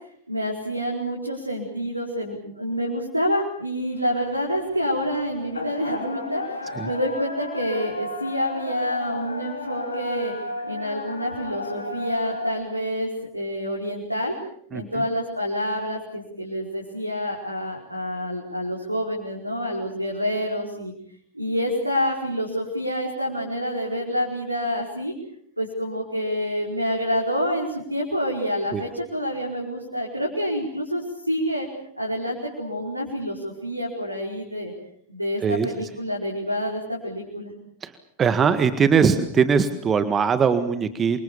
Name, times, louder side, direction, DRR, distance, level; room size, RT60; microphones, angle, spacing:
voice 1, 0.3-10.3 10.7-14.3 14.7-20.9 21.3-25.1 25.6-31.7 32.0-34.7 35.1-37.5, equal, 90° right, -1 dB, 4.9 m, -27 dB
sound 1, 3.9-12.5, left 2 dB, 80° left, 3.6 m, -34 dB
voice 2, 38.2-41.2, right 6 dB, 20° right, 11 dB, 1.8 m, -20 dB
28.5 x 25.0 x 7.1 m, 0.66 s
figure-of-eight pair, 90°, 0 cm